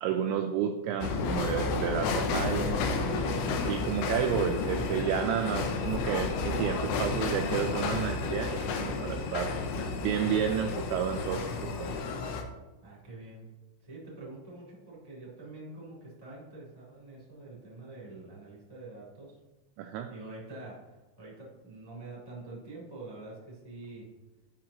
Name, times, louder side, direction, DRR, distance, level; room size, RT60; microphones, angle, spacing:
voice 1, 0.0-9.5 10.0-12.0 19.8-20.1, right 8 dB, 85° right, 4 dB, 2.6 m, -31 dB
sound 1, 1.0-12.4, left 4 dB, 80° left, 2.7 m, -31 dB
voice 2, 12.8-13.4 13.8-19.4 20.1-24.1, right 2 dB, 10° left, -5 dB, 1.3 m, -46 dB
12.0 x 5.9 x 2.9 m, 1.1 s
omnidirectional pair, 5.7 m